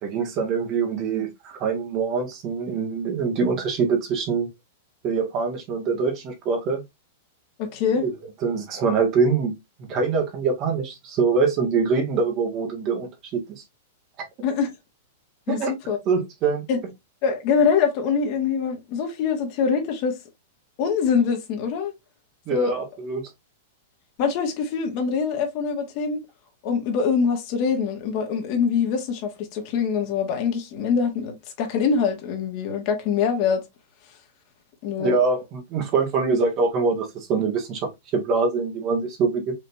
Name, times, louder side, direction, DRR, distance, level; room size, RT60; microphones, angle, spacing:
voice 1, 0.0-4.5 5.0-6.8 8.0-8.1 8.4-9.5 9.9-13.4 15.5-15.7 16.1-16.7 22.5-23.2 35.0-37.8 38.1-39.5, right 4 dB, 40° right, 1.8 m, -24 dB
voice 2, 7.6-8.1 14.4-14.7 15.5-16.0 16.7-16.8 17.2-20.1 20.8-21.9 22.5-22.7 24.2-26.2 26.6-33.6 34.8-35.2, left 6 dB, 50° left, 1.7 m, -24 dB
5.2 x 3.3 x 2.7 m
hypercardioid pair, 130°, 0 cm